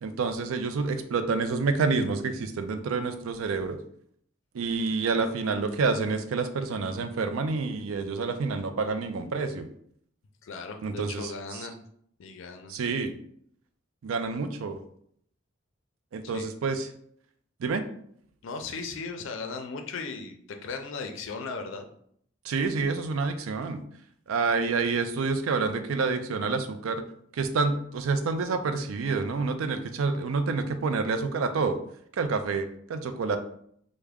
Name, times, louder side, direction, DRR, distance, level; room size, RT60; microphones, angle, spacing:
voice 1, 0.0-3.8 4.5-9.7 10.8-11.6 12.7-13.1 14.0-14.8 16.1-16.9 17.6-17.9 22.4-23.8 24.3-27.0 27.3-31.8 32.2-33.4, right 4 dB, 85° right, 9 dB, 0.4 m, -28 dB
voice 2, 10.4-11.8 12.2-12.8 16.2-16.5 18.4-21.9, left 4 dB, 65° left, 5 dB, 0.5 m, -37 dB
3.4 x 2.1 x 3.4 m, 0.66 s
head